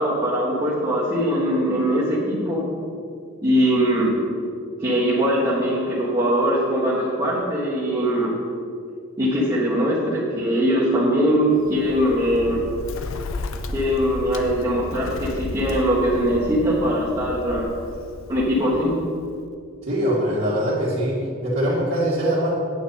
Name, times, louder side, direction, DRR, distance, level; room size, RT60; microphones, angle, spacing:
voice 1, 0.0-2.6 3.4-4.1 4.8-8.3 9.2-12.6 13.7-17.7 18.3-18.9, equal, 20° right, -9 dB, 1.6 m, -21 dB
Bird, 11.6-19.4, left 2 dB, 70° left, 0.6 m, -34 dB
voice 2, 19.8-22.5, equal, 55° right, -11 dB, 2.2 m, -22 dB
9.0 x 8.8 x 4.2 m, 2.3 s
head